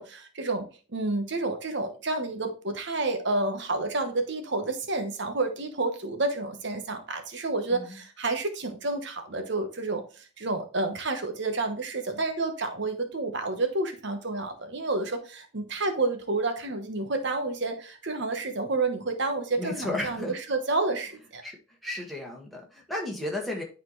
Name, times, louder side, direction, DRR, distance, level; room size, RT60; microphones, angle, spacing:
voice 1, 0.0-21.4, right 3 dB, 55° right, 1.0 m, -30 dB
voice 2, 7.7-8.0 19.6-20.4 21.4-21.6 21.8-23.6, left 1 dB, ahead, 1.7 m, -33 dB
10.0 x 4.2 x 3.1 m
head